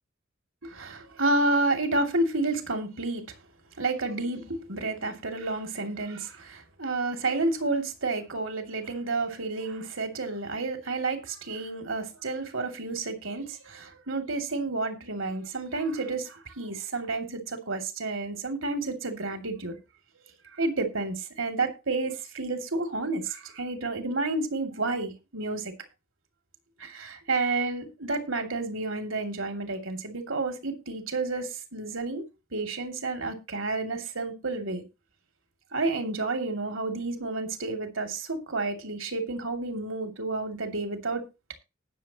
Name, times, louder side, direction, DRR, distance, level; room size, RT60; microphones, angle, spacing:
voice 1, 0.6-3.2 3.8-19.8 20.5-25.7 26.8-32.2 32.5-34.8 35.7-41.3, right 3 dB, 75° right, 2.7 m, -30 dB
19.0 x 7.1 x 3.0 m
head